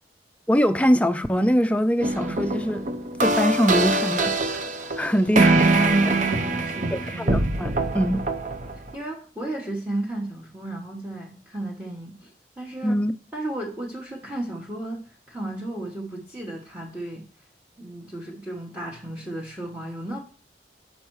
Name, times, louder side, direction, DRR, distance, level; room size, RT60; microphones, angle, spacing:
voice 1, 0.5-2.9 3.2-4.7 5.0-5.7 6.9-8.2 12.8-13.1, equal, 10° left, 0.4 m, -23 dB
sound 1, 2.0-8.9, right 2 dB, 45° right, 0.7 m, -24 dB
voice 2, 5.7-7.4 8.7-12.3 12.6-13.0 13.3-17.2 17.8-20.2, right 1 dB, 10° right, 1.1 m, -33 dB
7.1 x 5.4 x 4.6 m
head